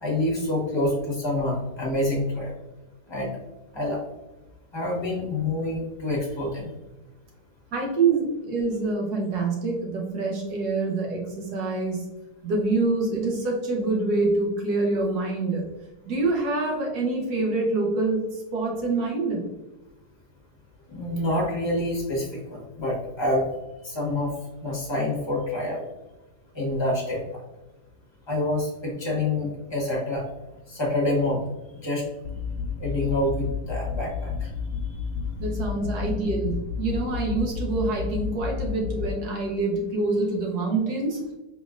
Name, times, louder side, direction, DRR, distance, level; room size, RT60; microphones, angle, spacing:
voice 1, 0.0-2.5 3.1-3.4 3.7-4.0 4.7-6.7 20.9-23.5 23.8-24.3 24.6-25.8 26.5-27.4 28.3-30.2 30.7-31.5 31.7-32.1 32.8-34.5, left 1 dB, 20° left, -3 dB, 1.0 m, -27 dB
voice 2, 7.7-12.1 12.4-15.7 16.1-19.5 35.4-41.2, right 3 dB, 70° right, -1 dB, 1.6 m, -26 dB
sound 1, 32.2-39.1, left 5 dB, 85° left, 0.6 m, -31 dB
4.3 x 3.6 x 2.4 m, 1.1 s
omnidirectional pair, 1.8 m